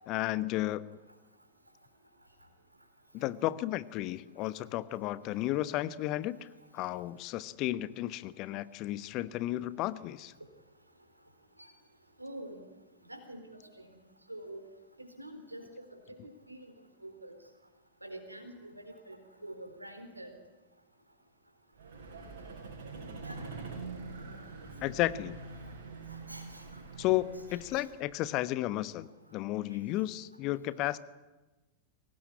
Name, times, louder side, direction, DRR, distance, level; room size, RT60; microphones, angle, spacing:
voice 1, 0.1-1.0 3.1-6.5 6.7-10.3 24.8-25.4 27.0-31.0, left 15 dB, 40° left, 15 dB, 1.1 m, -33 dB
voice 2, 12.2-12.6 13.0-14.0 14.3-14.6 15.2-16.7 17.0-17.4 18.0-20.4 23.2-23.4 26.1-26.8 27.5-27.9, right 1 dB, 85° right, 7 dB, 3.9 m, -46 dB
Vehicle, 21.7-28.2, right 3 dB, 65° right, 5.8 m, -45 dB
23.5 x 18.5 x 9.9 m, 1.1 s
figure-of-eight pair, 90°, 0 cm